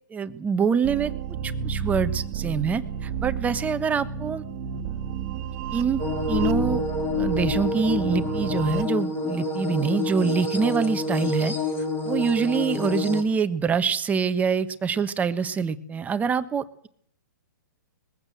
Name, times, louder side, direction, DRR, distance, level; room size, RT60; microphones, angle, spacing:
voice 1, 0.1-1.1 1.4-4.4 5.7-6.0 6.3-6.8 7.1-11.5 12.1-16.9, right 6 dB, 15° right, 9 dB, 1.2 m, -25 dB
sound 1, 0.8-8.8, right 7 dB, 40° right, 1.7 m, -31 dB
sound 2, 6.0-13.2, left 3 dB, 20° left, 3.7 m, -28 dB
21.0 x 15.5 x 7.9 m, 0.64 s
hypercardioid pair, 130°, 11 cm